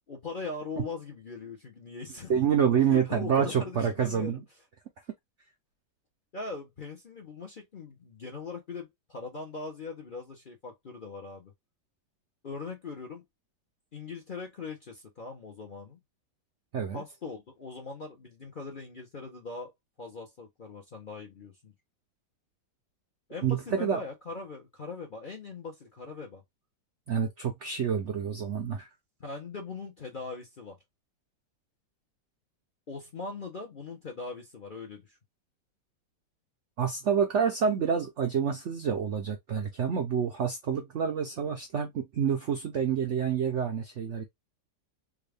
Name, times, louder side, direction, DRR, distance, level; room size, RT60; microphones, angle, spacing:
voice 1, 0.1-2.3 2.9-4.4 6.3-11.5 12.4-13.2 13.9-16.0 16.9-19.7 20.0-21.7 23.3-26.4 29.2-30.8 32.9-35.2, left 4 dB, 40° left, 0.7 m, -40 dB
voice 2, 2.3-4.4 16.7-17.0 23.4-24.0 27.1-28.9 36.8-44.2, right 7 dB, 65° right, 0.7 m, -28 dB
3.5 x 2.5 x 3.3 m
omnidirectional pair, 1.9 m